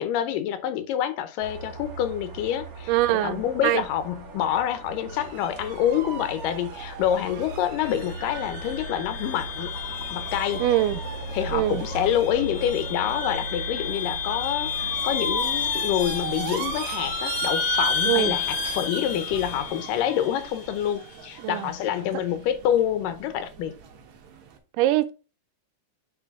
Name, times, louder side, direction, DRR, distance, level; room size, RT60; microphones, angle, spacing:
voice 1, 0.0-9.7 10.1-10.6 11.3-23.8, left 10 dB, 85° left, 2.4 m, -27 dB
sound 1, 1.4-18.9, right 3 dB, 35° right, 1.5 m, -39 dB
voice 2, 2.9-3.8 10.6-11.0 11.5-11.8 18.1-18.4 21.4-21.7 24.8-25.1, right 15 dB, 90° right, 2.2 m, -23 dB
sound 2, 5.1-24.6, right 7 dB, 65° right, 2.4 m, -37 dB
sound 3, 7.8-20.8, left 10 dB, 70° left, 2.0 m, -32 dB
9.0 x 3.9 x 3.6 m
omnidirectional pair, 3.8 m